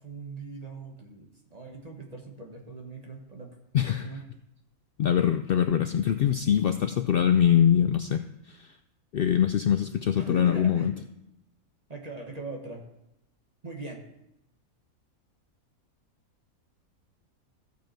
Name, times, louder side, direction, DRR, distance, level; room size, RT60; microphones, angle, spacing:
voice 1, 0.0-3.6 3.9-4.2 10.1-10.9 11.9-12.8 13.6-14.0, right 3 dB, 30° right, 1 dB, 1.5 m, -40 dB
voice 2, 3.7-4.1 5.0-8.2 9.1-10.9, left 9 dB, 80° left, 9 dB, 0.5 m, -23 dB
14.5 x 7.2 x 4.5 m, 0.86 s
omnidirectional pair, 1.5 m